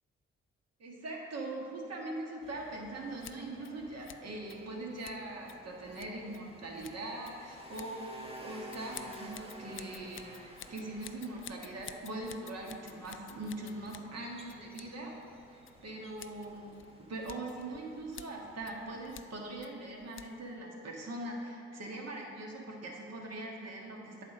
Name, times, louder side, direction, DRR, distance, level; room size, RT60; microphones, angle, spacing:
voice 1, 0.8-15.1 15.5-24.2, right 2 dB, 55° right, -1 dB, 1.6 m, -42 dB
sound 1, 2.4-19.2, right 1 dB, 20° right, 1.3 m, -53 dB
Scissors, 3.1-20.6, left 10 dB, 40° left, 0.4 m, -54 dB
9.0 x 3.6 x 6.6 m, 2.4 s
hypercardioid pair, 45°, 30 cm